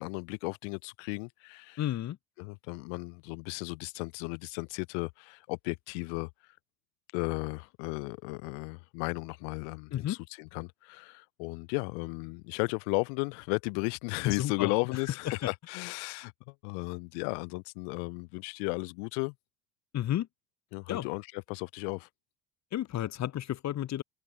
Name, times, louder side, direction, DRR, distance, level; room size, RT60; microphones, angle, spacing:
voice 1, 0.0-1.8 2.4-6.3 7.1-19.3 20.7-22.1, left 39 dB, 85° left, 1.4 m, -35 dB
voice 2, 1.8-2.2 9.9-10.2 14.2-15.0 19.9-20.3 20.9-21.1 22.7-24.0, left 12 dB, 50° left, 2.9 m, -32 dB
supercardioid pair, 110°, 36 cm